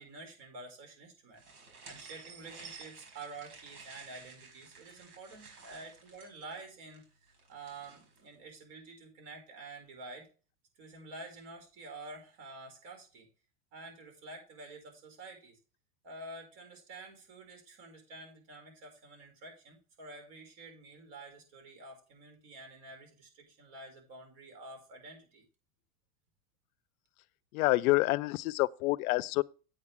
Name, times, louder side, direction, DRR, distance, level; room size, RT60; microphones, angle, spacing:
voice 1, 0.0-10.3 10.8-13.3 13.7-15.6 16.0-25.4, right 2 dB, 60° right, 5.6 m, -49 dB
sound 1, 1.4-8.2, right 4 dB, 85° right, 5.1 m, -53 dB
voice 2, 27.5-29.4, left 21 dB, 70° left, 0.6 m, -27 dB
9.1 x 8.6 x 3.5 m
supercardioid pair, 135°, 44 cm